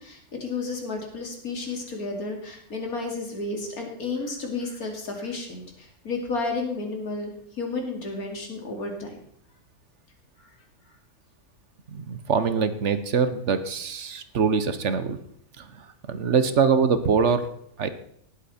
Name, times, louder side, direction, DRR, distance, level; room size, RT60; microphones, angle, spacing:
voice 1, 0.0-9.1, left 3 dB, 90° left, 2 dB, 3.0 m, -32 dB
voice 2, 11.9-15.2 15.6-17.4 17.8-17.9, right 5 dB, 55° right, 11 dB, 1.2 m, -24 dB
18.0 x 8.5 x 4.3 m, 0.67 s
omnidirectional pair, 1.5 m